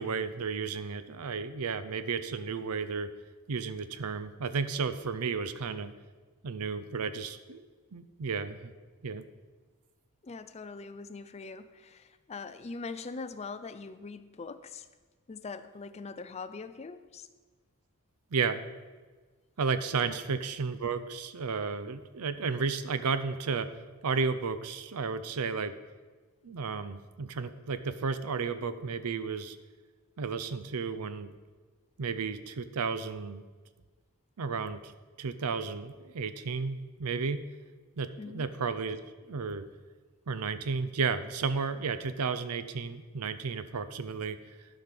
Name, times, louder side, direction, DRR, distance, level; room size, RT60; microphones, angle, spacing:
voice 1, 0.0-3.1 3.5-5.9 6.4-7.7 7.9-8.7 9.0-9.2 18.3-18.6 19.6-23.7 24.0-25.8 26.4-29.6 30.2-31.3 32.0-33.4 34.4-34.9 35.2-37.4 38.0-39.0 39.3-39.7 40.3-44.4, right 5 dB, 85° right, 12 dB, 0.6 m, -33 dB
voice 2, 10.2-14.9 15.3-17.3 20.0-20.2 38.2-38.5, left 4 dB, 30° left, 12 dB, 0.4 m, -42 dB
12.0 x 5.3 x 5.9 m, 1.4 s
head